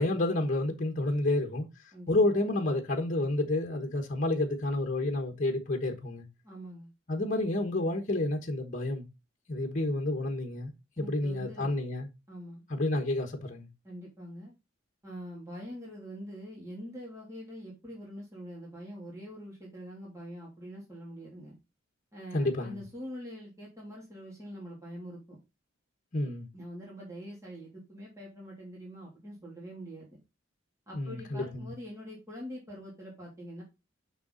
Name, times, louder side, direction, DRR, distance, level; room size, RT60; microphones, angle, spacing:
voice 1, 0.0-1.6 2.1-6.2 7.1-9.0 9.5-10.7 11.0-12.1 12.7-13.7 22.3-22.8 26.1-26.5 30.9-31.7, left 2 dB, 40° left, 1.3 m, -29 dB
voice 2, 6.4-6.9 11.0-11.7 12.3-12.6 13.8-14.5 15.0-21.5 22.1-25.4 26.5-30.2 30.9-33.6, equal, 15° right, 2.8 m, -44 dB
6.9 x 5.8 x 3.9 m
head